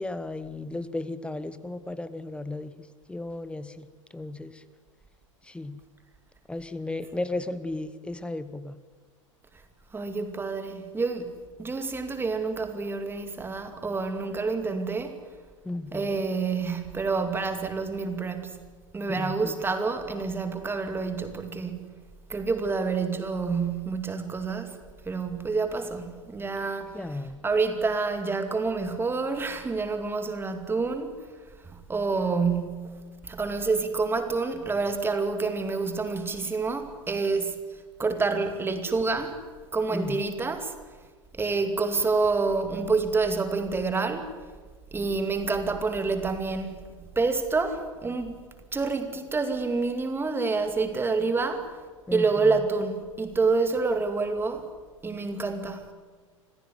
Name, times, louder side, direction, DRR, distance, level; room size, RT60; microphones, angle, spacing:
voice 1, 0.0-2.7 3.1-3.9 4.1-4.6 5.5-5.8 6.5-8.7 15.6-16.1 19.1-19.5 26.9-27.4 39.9-40.2 52.1-52.5, left 2 dB, 5° left, 1.1 m, -34 dB
voice 2, 9.9-11.3 11.6-15.2 15.9-18.6 18.9-22.0 22.3-24.8 25.1-31.2 31.6-37.6 38.0-39.4 39.7-40.8 41.3-44.3 44.9-46.9 47.2-48.4 48.7-51.7 52.1-54.7 55.0-55.9, right 4 dB, 15° right, 2.4 m, -28 dB
26.5 x 16.0 x 9.5 m
figure-of-eight pair, 90°, 17 cm